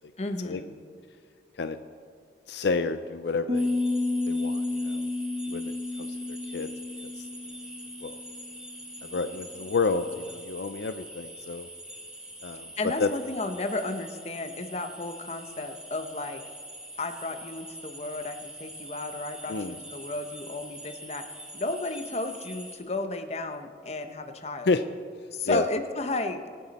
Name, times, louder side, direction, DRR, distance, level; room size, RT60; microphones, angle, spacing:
voice 1, 0.2-0.7 12.8-16.4 17.0-24.7 25.3-26.4, left 2 dB, 35° left, 7 dB, 0.9 m, -33 dB
voice 2, 2.5-3.7 4.3-5.1 5.5-5.7 6.3-6.7 7.0-7.3 8.0-8.2 9.0-11.7 12.4-12.7 13.0-13.1 19.5-19.8 24.7-24.8 25.4-25.6, left 4 dB, 70° left, 10 dB, 0.5 m, -29 dB
sound 1, 3.5-22.8, right 1 dB, 5° right, 2.0 m, -44 dB
Piano, 3.5-9.1, left 2 dB, 35° right, 1.2 m, -31 dB
24.0 x 9.3 x 4.2 m, 2.1 s
head